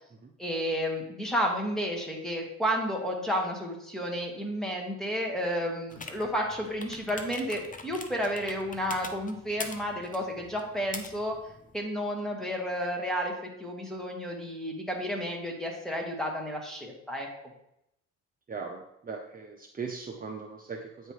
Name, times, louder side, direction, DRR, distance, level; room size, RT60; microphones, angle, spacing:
voice 1, 0.4-11.4 11.7-13.3 13.6-17.3, equal, ahead, 0 dB, 1.7 m, -31 dB
sound 1, 5.9-11.8, left 3 dB, 25° left, 0.8 m, -44 dB
voice 2, 18.5-21.1, right 5 dB, 30° right, 1 dB, 0.8 m, -39 dB
8.9 x 3.4 x 4.6 m, 0.79 s
cardioid pair, 90°, 30 cm